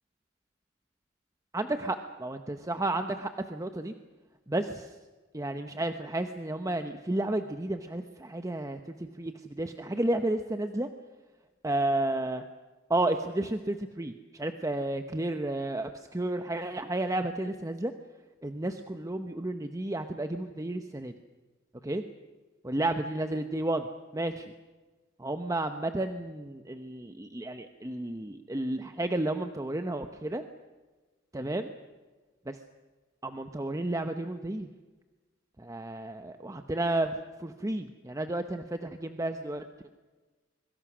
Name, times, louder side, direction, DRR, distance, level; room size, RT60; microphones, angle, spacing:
voice 1, 1.5-3.9 4.5-4.9 5.3-10.9 11.6-12.4 12.9-17.9 18.4-21.1 21.8-22.0 22.6-23.9 24.1-24.5 25.2-30.4 31.3-31.7 32.5-32.6 33.2-34.7 35.6-39.9, right 1 dB, 15° right, 7 dB, 0.9 m, -32 dB
25.0 x 23.0 x 6.2 m, 1.3 s
head